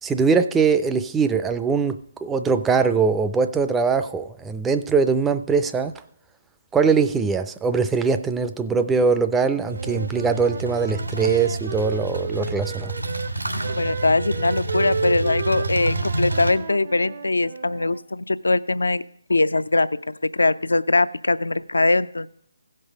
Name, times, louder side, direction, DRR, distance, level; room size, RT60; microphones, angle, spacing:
voice 1, 0.0-5.9 6.7-12.9, right 5 dB, 10° right, 10 dB, 0.4 m, -22 dB
Wind instrument woodwind instrument, 9.6-13.3 13.6-18.0, right 5 dB, 50° right, 0.6 m, -33 dB
sound 1, 9.6-16.5, right 2 dB, 90° right, 1.4 m, -29 dB
voice 2, 13.8-19.0 19.3-22.3, left 2 dB, 75° left, 16 dB, 0.4 m, -21 dB
16.0 x 5.4 x 5.0 m, 0.68 s
figure-of-eight pair, 145°, 0 cm